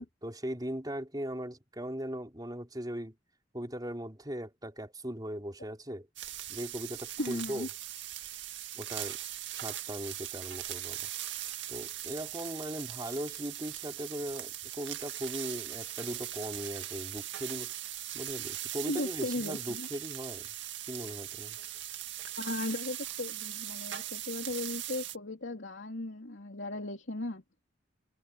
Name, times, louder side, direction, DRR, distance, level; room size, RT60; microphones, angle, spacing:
voice 1, 0.0-3.2 3.5-6.1 6.5-7.7 8.7-9.2 9.5-11.0 11.7-17.7 18.1-20.5 20.9-21.6, equal, 20° right, 4.4 m, -39 dB
sound 1, 6.2-25.2, right 13 dB, 75° right, 2.0 m, -40 dB
voice 2, 7.2-7.7 18.9-19.9 22.4-27.4, left 2 dB, 75° left, 3.1 m, -37 dB
head